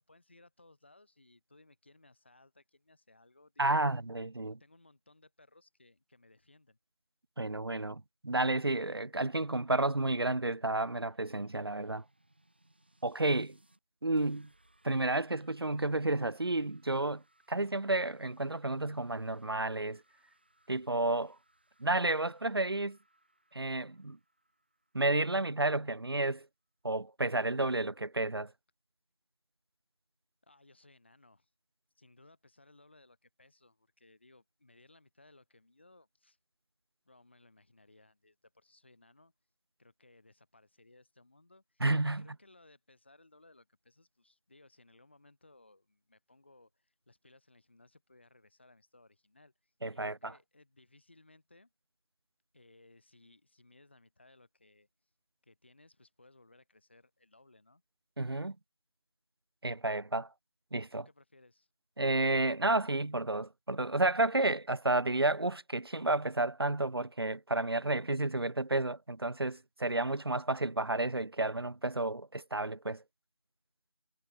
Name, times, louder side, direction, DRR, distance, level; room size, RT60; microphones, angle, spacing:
voice 1, 0.0-3.7 4.3-6.8 30.4-31.5 31.9-36.4 37.1-39.3 39.8-51.7 52.5-54.9 55.4-57.8 60.9-61.7, left 2 dB, 20° left, 3.8 m, -62 dB
voice 2, 3.6-4.5 7.4-12.0 13.0-13.6 14.0-14.5 14.8-17.2 17.5-20.0 20.7-21.4 21.8-23.0 23.5-24.2 24.9-26.5 26.8-28.5 41.8-42.3 49.8-50.3 58.2-58.6 59.6-60.3 60.7-61.0 62.0-73.0, right 2 dB, 55° right, 0.5 m, -31 dB
sound 1, 9.4-13.8 14.2-25.7, right 1 dB, 20° right, 1.8 m, -70 dB
figure-of-eight pair, 180°, 16 cm